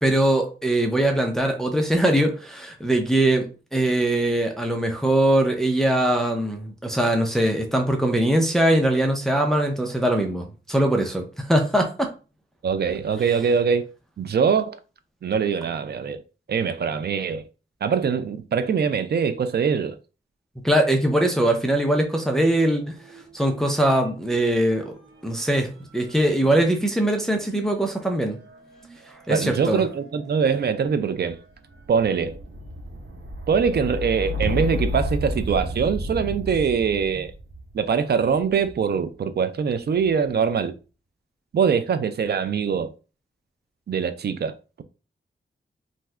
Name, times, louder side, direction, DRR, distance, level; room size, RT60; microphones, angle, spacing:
voice 1, 0.0-12.1 20.6-23.0 23.3-24.9 25.2-28.4 29.3-29.8, right 1 dB, ahead, 0.5 m, -21 dB
voice 2, 12.6-13.9 14.2-14.8 15.2-16.2 16.5-17.4 17.8-20.0 29.3-31.4 31.9-32.4 33.5-37.3 37.7-40.7 41.5-42.9 43.9-44.8, right 6 dB, 55° right, 0.4 m, -23 dB
sound 1, 22.3-23.7 23.9-39.0 39.7-40.3, left 1 dB, 90° right, 0.7 m, -34 dB
2.6 x 2.3 x 3.1 m
wide cardioid pair, 110°, 20 cm